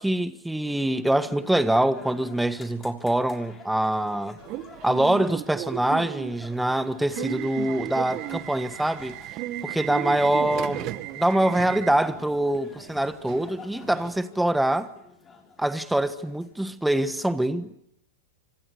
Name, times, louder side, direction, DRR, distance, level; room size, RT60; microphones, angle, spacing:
voice 1, 0.0-4.4 4.8-9.2 9.6-10.9 11.1-14.9 15.6-17.8, right 1 dB, 5° right, 1.4 m, -24 dB
sound 1, 0.9-16.7, left 4 dB, 20° left, 6.1 m, -50 dB
Subway metro underground / Alarm, 4.4-14.2, right 15 dB, 40° right, 1.8 m, -35 dB
27.0 x 25.5 x 6.5 m
hypercardioid pair, 130°, 0 cm